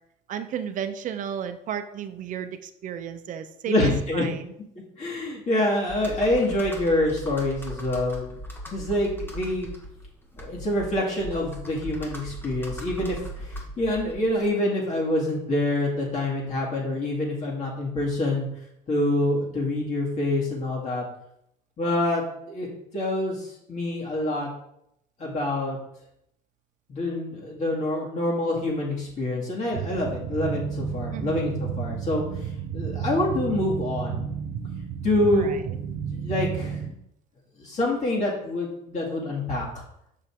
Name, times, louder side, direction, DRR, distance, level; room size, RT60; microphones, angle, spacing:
voice 1, 0.3-4.5 31.1-31.4 35.3-35.6, right 8 dB, 45° right, 9 dB, 0.6 m, -34 dB
voice 2, 3.7-4.3 5.0-8.3 8.7-9.7 10.4-18.5 18.9-21.0 21.8-22.7 22.9-24.5 25.2-25.8 26.9-32.2 32.7-34.3 35.0-35.5 36.1-36.8 37.6-39.6, left 1 dB, 40° left, -4 dB, 2.4 m, -26 dB
Computer keyboard, 5.9-14.5, equal, 10° left, 1.4 m, -39 dB
sound 1, 29.7-36.9, right 7 dB, 65° right, 1.1 m, -32 dB
6.2 x 5.5 x 3.7 m, 0.77 s
supercardioid pair, 90°, 18 cm